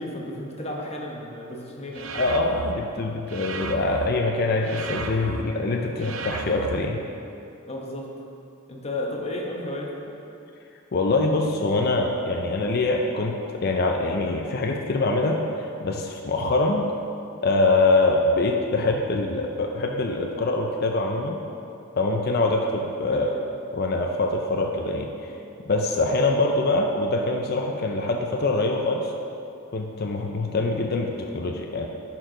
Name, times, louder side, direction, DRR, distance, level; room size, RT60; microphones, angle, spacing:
voice 1, 0.0-2.3 7.7-8.1 8.7-10.1 23.1-23.4, left 1 dB, 30° left, -1 dB, 1.0 m, -33 dB
sound 1, 1.9-2.7 3.3-4.1 4.6-5.4 6.0-6.8, right 4 dB, 70° right, 0.5 m, -33 dB
voice 2, 2.1-7.0 10.9-15.4 15.8-16.8 17.4-21.4 22.0-23.3 23.7-25.1 25.7-29.1 29.7-31.9, left 2 dB, 50° left, 2 dB, 0.5 m, -24 dB
11.0 x 4.6 x 3.8 m, 2.7 s
head